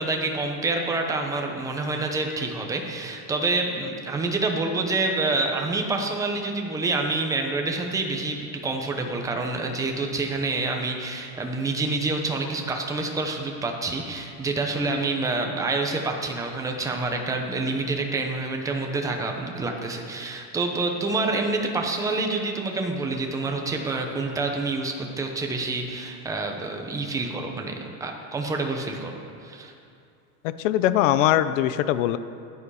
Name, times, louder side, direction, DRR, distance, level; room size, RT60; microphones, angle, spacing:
voice 1, 0.0-29.1 29.4-29.7, right 3 dB, 10° right, 2 dB, 0.8 m, -27 dB
voice 2, 30.4-32.2, left 12 dB, 65° left, 13 dB, 0.7 m, -21 dB
15.5 x 11.5 x 4.9 m, 2.5 s
supercardioid pair, 175°, 42 cm